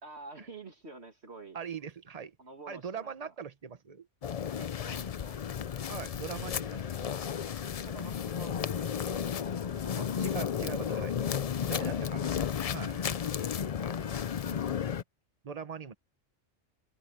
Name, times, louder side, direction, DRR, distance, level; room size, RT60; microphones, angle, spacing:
voice 1, 0.0-1.6 2.4-3.3 4.6-5.4 7.8-10.1 11.8-12.3, right 3 dB, 60° right, 2.4 m, -49 dB
voice 2, 1.5-2.4 2.7-4.1 5.9-7.2 9.9-11.1 11.7-12.5 12.7-13.0 14.5-14.7 15.4-15.9, right 6 dB, 35° right, 1.1 m, -41 dB
sound 1, 4.2-15.0, left 8 dB, 55° left, 0.4 m, -33 dB
omnidirectional pair, 1.3 m